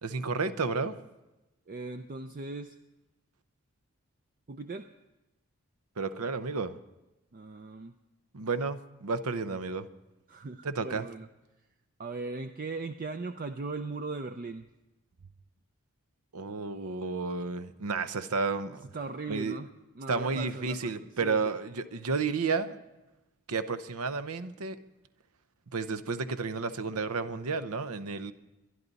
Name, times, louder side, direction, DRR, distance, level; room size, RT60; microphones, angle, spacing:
voice 1, 0.0-1.0 6.0-6.8 8.3-9.9 10.6-11.1 16.3-18.8 19.3-19.6 20.1-22.8 23.5-24.8 25.7-28.3, right 4 dB, 80° right, 12 dB, 0.8 m, -32 dB
voice 2, 1.7-2.8 4.5-4.9 7.3-8.0 10.3-11.3 12.0-14.7 18.9-19.7 20.0-21.5, right 3 dB, 40° right, 8 dB, 0.4 m, -38 dB
23.0 x 11.0 x 4.0 m, 1.0 s
head